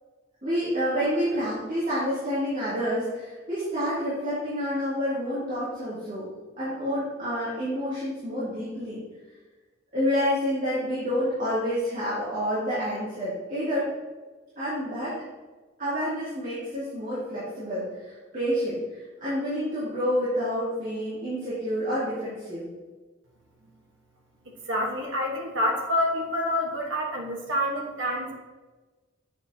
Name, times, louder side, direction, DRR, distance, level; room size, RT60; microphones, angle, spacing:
voice 1, 0.4-6.3 6.6-9.0 9.9-13.9 14.6-15.2 15.8-22.7, equal, 40° right, -11 dB, 2.2 m, -28 dB
voice 2, 24.4-28.3, left 1 dB, 70° right, 0 dB, 1.3 m, -27 dB
7.9 x 6.1 x 2.8 m, 1.3 s
head